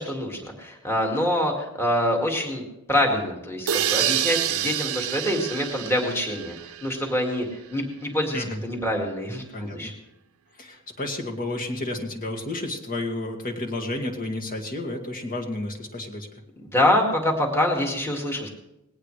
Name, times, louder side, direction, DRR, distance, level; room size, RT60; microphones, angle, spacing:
voice 1, 0.0-2.6 2.9-7.5 7.7-9.9 16.6-18.5, left 1 dB, 10° left, 1 dB, 2.1 m, -25 dB
sound 1, 3.7-7.4, right 10 dB, 80° right, 0.8 m, -28 dB
voice 2, 9.5-9.9 10.6-16.3, left 2 dB, 40° left, 2 dB, 2.2 m, -31 dB
19.5 x 17.5 x 3.3 m, 0.88 s
head